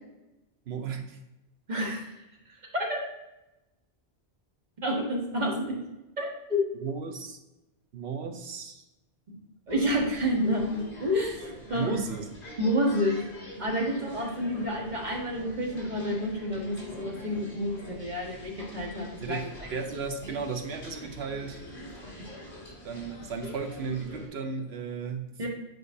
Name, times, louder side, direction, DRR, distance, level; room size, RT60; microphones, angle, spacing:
voice 1, 0.7-1.2 6.8-7.4 7.9-8.8 11.7-12.3 19.2-21.6 22.8-25.5, right 5 dB, 75° right, 5 dB, 1.0 m, -35 dB
voice 2, 1.7-2.1 2.7-3.0 4.8-5.7 6.2-6.6 9.7-11.9 12.6-13.2 13.6-19.5 25.4-25.5, equal, 45° right, -1 dB, 1.4 m, -29 dB
sound 1, 9.7-24.3, left 1 dB, 75° left, 2.5 m, -45 dB
8.0 x 5.0 x 2.7 m, 0.97 s
omnidirectional pair, 1.1 m